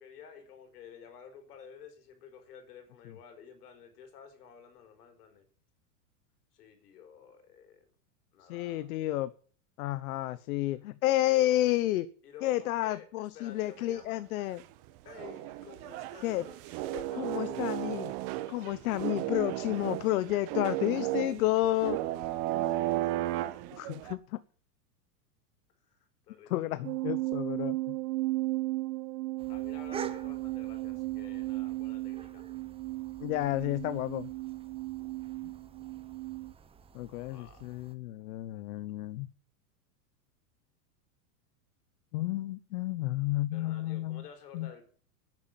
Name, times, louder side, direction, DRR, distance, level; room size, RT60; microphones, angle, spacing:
voice 1, 0.0-5.5 6.5-7.8 8.3-9.0 10.3-11.7 12.2-14.3 15.0-17.8 22.5-23.6 25.9-26.9 29.5-32.5 37.2-37.6 43.5-44.9, left 7 dB, 80° left, 5.0 m, -51 dB
voice 2, 8.5-9.3 9.8-12.0 12.4-14.6 16.2-16.4 17.2-18.1 18.5-22.0 23.8-24.4 26.5-27.8 33.2-34.3 36.9-39.3 42.1-44.2 44.5-44.7, left 15 dB, 65° left, 1.1 m, -31 dB
sound 1, 13.7-14.2 14.6-14.7 14.8-24.1, right 15 dB, 45° right, 1.4 m, -34 dB
sound 2, 26.8-36.5, right 20 dB, 60° right, 0.8 m, -35 dB
sound 3, 29.4-38.0, right 6 dB, 10° right, 0.9 m, -48 dB
11.0 x 9.7 x 7.6 m
supercardioid pair, 145°, 46 cm